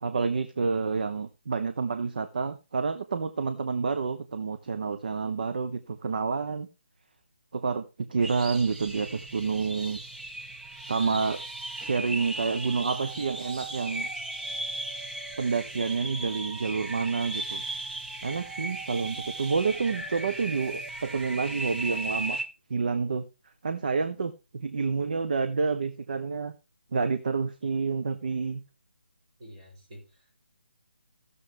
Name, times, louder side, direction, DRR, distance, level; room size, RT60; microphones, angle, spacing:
voice 1, 0.0-6.7 7.5-7.8 8.1-10.0 10.9-11.4 11.8-14.1 15.4-17.6 18.2-22.4 22.7-23.2 23.6-26.5 26.9-28.6, right 5 dB, 50° right, 9 dB, 0.8 m, -29 dB
sound 1, 8.2-22.4, right 2 dB, 5° right, 0.6 m, -37 dB
voice 2, 10.9-11.3 29.4-30.3, equal, 30° right, -1 dB, 4.3 m, -48 dB
16.0 x 6.9 x 3.3 m, 0.28 s
figure-of-eight pair, 145°, 6 cm